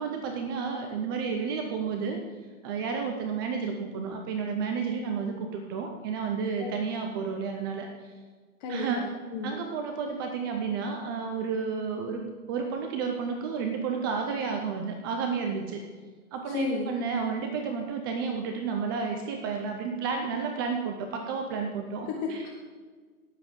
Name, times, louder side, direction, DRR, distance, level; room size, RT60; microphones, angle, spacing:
voice 1, 0.0-2.2 2.6-7.9 8.7-9.1 9.4-15.8 16.3-22.5, right 5 dB, 15° right, 4 dB, 0.5 m, -31 dB
voice 2, 8.6-9.5 16.5-16.9 22.2-22.5, left 4 dB, 30° left, 0 dB, 1.4 m, -32 dB
18.0 x 7.2 x 3.8 m, 1.5 s
hypercardioid pair, 135°, 44 cm